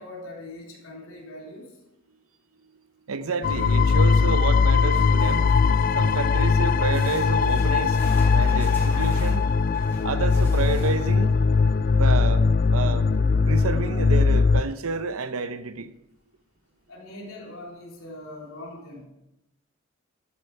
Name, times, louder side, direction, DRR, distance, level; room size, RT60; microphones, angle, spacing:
voice 1, 0.0-1.7 16.9-19.1, left 1 dB, 75° left, 3.5 m, -41 dB
voice 2, 3.1-5.4 6.0-7.9 8.3-9.4 10.0-11.3 12.0-12.4 12.7-13.0 13.5-15.9, right 4 dB, 85° right, 0.8 m, -29 dB
sound 1, 3.4-14.6, left 4 dB, 40° left, 0.3 m, -20 dB
sound 2, 4.9-6.3 6.9-11.2 14.5-14.6 14.9-15.0 15.7-15.8, left 1 dB, 10° left, 4.3 m, -44 dB
12.0 x 8.9 x 4.8 m
head